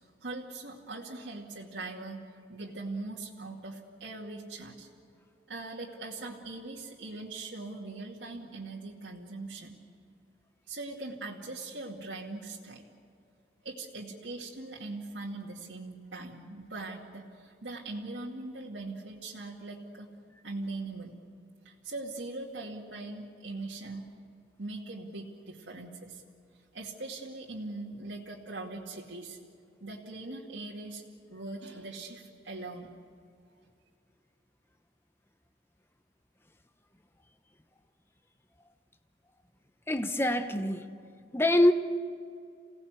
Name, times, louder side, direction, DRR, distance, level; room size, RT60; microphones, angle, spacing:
voice 1, 0.2-2.2 2.5-4.9 5.5-9.7 10.7-12.8 13.6-20.1 20.4-21.1 21.6-24.1 24.6-26.2 26.7-29.4 29.8-31.0 31.3-32.9, right 2 dB, 80° right, -4 dB, 2.4 m, -41 dB
voice 2, 39.9-40.8 41.3-41.7, left 1 dB, 15° left, 8 dB, 0.9 m, -24 dB
28.0 x 18.0 x 8.2 m, 2.3 s
head